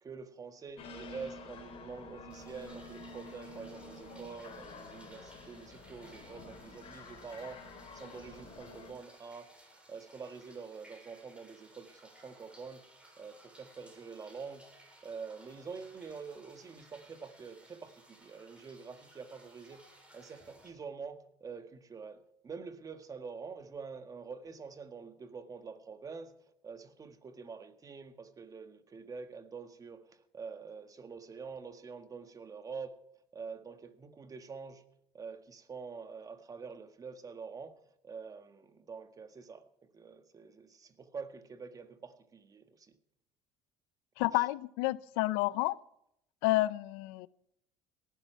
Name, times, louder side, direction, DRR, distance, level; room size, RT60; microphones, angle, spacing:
voice 1, 0.0-9.5 9.9-12.8 13.2-14.7 15.0-26.3 26.6-33.0 33.3-34.8 35.1-37.8 38.0-39.6 39.9-42.9 44.3-44.5, right 5 dB, 25° right, 1.6 m, -46 dB
sound 1, 0.8-8.9, left 2 dB, 45° left, 4.3 m, -49 dB
sound 2, 2.3-20.7, right 1 dB, 10° right, 6.6 m, -59 dB
voice 2, 44.2-45.8 46.4-47.3, left 19 dB, 90° left, 0.6 m, -30 dB
18.5 x 12.5 x 4.6 m
cardioid pair, 120°, 13 cm